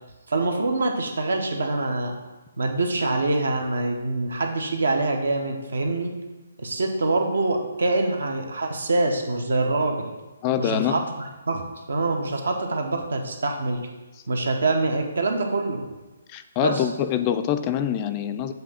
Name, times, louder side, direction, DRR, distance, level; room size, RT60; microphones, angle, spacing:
voice 1, 0.3-2.1 2.6-6.1 6.6-10.1 10.6-11.0 11.5-13.8 14.3-15.9 16.6-16.8, right 2 dB, 85° right, 3 dB, 1.1 m, -25 dB
voice 2, 10.4-11.0 16.3-18.5, left 10 dB, 25° left, 9 dB, 0.3 m, -25 dB
7.6 x 2.7 x 5.7 m, 1.1 s
hypercardioid pair, 155°, 0 cm